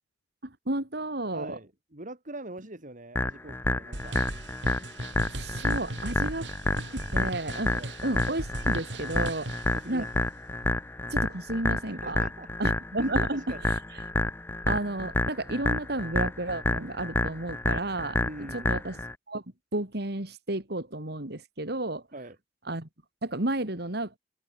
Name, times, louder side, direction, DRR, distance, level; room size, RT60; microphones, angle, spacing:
voice 1, 0.4-1.6 5.4-7.7 8.0-10.1 11.1-12.2 12.6-14.0 14.7-18.2 18.5-19.0 19.3-19.4 19.7-22.1 22.7-22.9 23.2-24.1, right 2 dB, 65° right, 3.3 m, -32 dB
voice 2, 1.3-4.2 7.7-7.9 9.7-10.1 11.9-12.5 13.0-13.6 18.2-18.8 22.1-22.4, right 2 dB, 45° right, 3.6 m, -43 dB
sound 1, 3.2-19.1, left 2 dB, 10° left, 0.4 m, -29 dB
sound 2, 3.9-9.8, right 1 dB, 85° right, 4.0 m, -38 dB
head